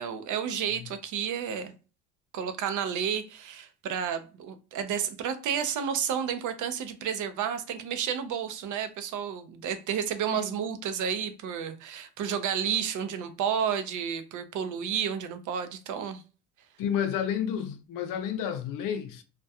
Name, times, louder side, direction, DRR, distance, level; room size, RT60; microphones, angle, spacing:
voice 1, 0.0-1.7 2.3-16.2, right 8 dB, 60° right, 0.5 m, -31 dB
voice 2, 16.8-19.2, left 9 dB, 75° left, 0.5 m, -31 dB
2.3 x 2.2 x 2.6 m
cardioid pair, 105°, 33 cm